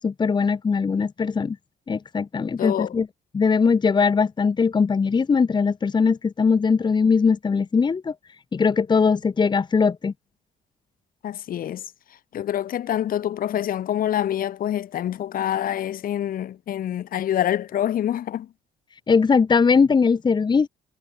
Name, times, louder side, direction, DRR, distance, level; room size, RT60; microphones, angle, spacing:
voice 1, 0.0-1.6 1.9-3.1 3.3-8.1 8.5-10.1 19.1-20.7, left 5 dB, 25° left, 1.3 m, -20 dB
voice 2, 2.6-2.9 11.2-11.8 12.3-18.5, left 11 dB, 55° left, 2.5 m, -26 dB
cardioid pair, 110°, 17 cm